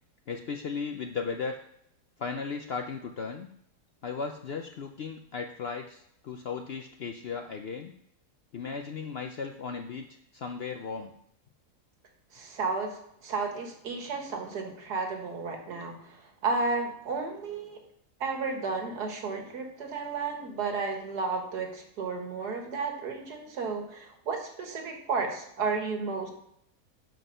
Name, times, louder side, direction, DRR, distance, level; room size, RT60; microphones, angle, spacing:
voice 1, 0.3-1.6 2.2-3.5 4.0-7.9 8.5-10.1 10.3-11.1, left 5 dB, 70° left, 5 dB, 0.5 m, -36 dB
voice 2, 12.3-17.8 18.2-26.3, right 4 dB, 75° right, 3 dB, 2.0 m, -33 dB
7.5 x 5.4 x 5.5 m, 0.73 s
omnidirectional pair, 1.7 m